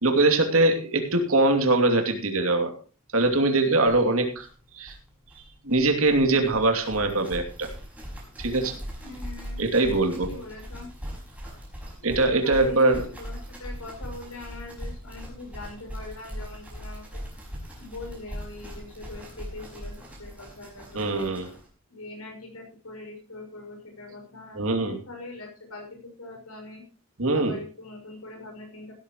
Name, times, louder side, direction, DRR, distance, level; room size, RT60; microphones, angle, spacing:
voice 1, 0.0-2.7 3.1-4.5 4.7-4.9 5.6-7.7 8.4-8.8 9.6-10.3 12.0-13.1 20.9-21.5 24.5-25.0 27.2-27.6, right 2 dB, 70° right, 5 dB, 2.8 m, -22 dB
sound 1, 3.2-3.3 3.5-3.6 3.8-21.7, equal, 5° right, 5.5 m, -40 dB
voice 2, 9.0-10.9 12.0-17.2 17.8-21.3 21.9-26.8 27.3-28.9, left 2 dB, 85° left, 3 dB, 6.0 m, -42 dB
16.0 x 13.0 x 3.1 m, 0.38 s
head